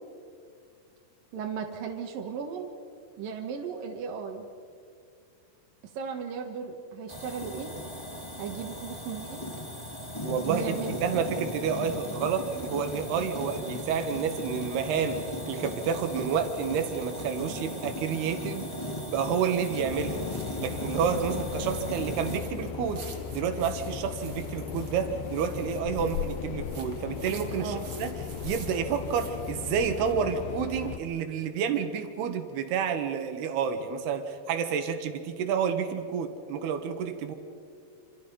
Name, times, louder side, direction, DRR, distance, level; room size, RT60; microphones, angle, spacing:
voice 1, 1.3-2.7 3.2-4.5 5.9-7.7 8.4-9.5 10.5-11.0 27.6-27.9, right 6 dB, 65° right, 2 dB, 3.0 m, -36 dB
sound 1, 7.1-22.4, left 1 dB, 35° left, 0.4 m, -37 dB
voice 2, 10.2-18.7 19.1-20.2 20.6-23.0 23.3-28.1 28.4-37.3, right 7 dB, 85° right, 7 dB, 3.6 m, -29 dB
sound 2, 18.3-30.2, right 5 dB, 40° right, 1.9 m, -50 dB
sound 3, 19.9-31.0, left 8 dB, 85° left, 2.9 m, -37 dB
27.5 x 27.0 x 5.5 m, 2.4 s
omnidirectional pair, 4.5 m